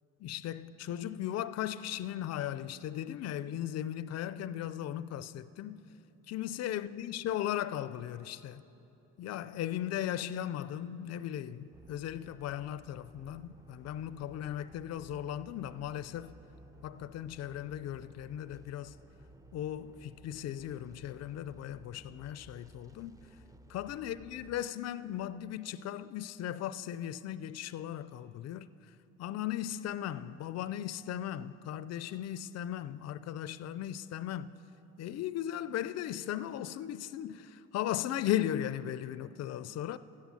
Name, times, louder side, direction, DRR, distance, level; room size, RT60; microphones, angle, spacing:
voice 1, 0.2-5.9 6.3-8.6 9.2-16.3 16.8-19.0 19.5-23.2 23.7-34.5 35.0-40.0, left 11 dB, 50° left, 0.4 m, -37 dB
sound 1, 11.7-24.6, right 1 dB, 10° right, 0.5 m, -57 dB
12.5 x 8.3 x 7.6 m
cardioid pair, 85°, 34 cm